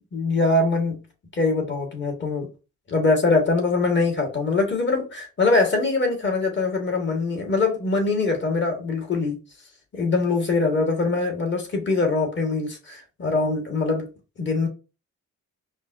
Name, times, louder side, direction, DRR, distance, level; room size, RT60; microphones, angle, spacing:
voice 1, 0.1-1.0 1.3-2.5 2.9-9.4 9.9-14.1 14.4-14.7, left 3 dB, 40° left, 1.4 m, -23 dB
5.3 x 2.3 x 2.5 m
cardioid pair, 90°, 30 cm